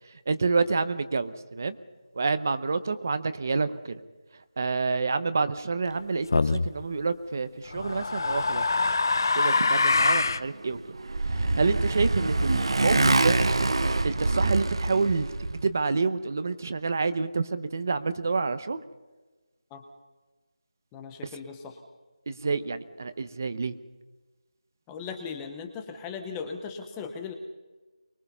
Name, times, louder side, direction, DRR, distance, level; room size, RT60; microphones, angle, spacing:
voice 1, 0.3-1.8 2.2-4.0 4.6-8.9 9.4-10.9 11.3-13.4 14.0-18.8 22.3-23.7, right 4 dB, 25° right, 12 dB, 0.8 m, -28 dB
sound 1, 6.3-6.7 7.7-10.5, left 3 dB, 35° left, 0.8 m, -24 dB
Motorcycle, 10.6-15.6, right 2 dB, 50° right, 1.2 m, -25 dB
voice 2, 20.9-21.8 24.9-27.3, left 5 dB, 5° left, 6 dB, 0.8 m, -38 dB
24.0 x 21.5 x 5.6 m, 1.2 s
figure-of-eight pair, 175°, 3 cm